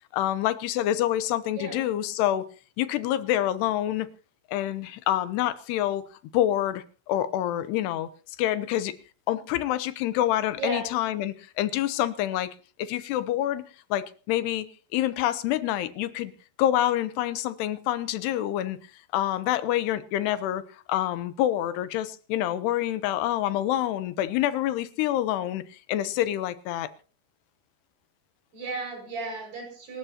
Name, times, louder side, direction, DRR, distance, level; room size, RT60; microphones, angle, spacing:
voice 1, 0.1-2.5 2.8-4.1 4.5-6.0 6.3-8.1 8.4-8.9 9.3-12.5 12.8-13.6 13.9-14.7 14.9-16.3 16.6-18.8 19.1-20.6 20.9-25.6 25.9-26.9, left 13 dB, 90° left, 3.0 m, -27 dB
voice 2, 1.6-1.9 10.6-11.0 28.5-30.0, right 2 dB, 60° right, 7.5 m, -34 dB
27.0 x 13.5 x 2.9 m
omnidirectional pair, 4.6 m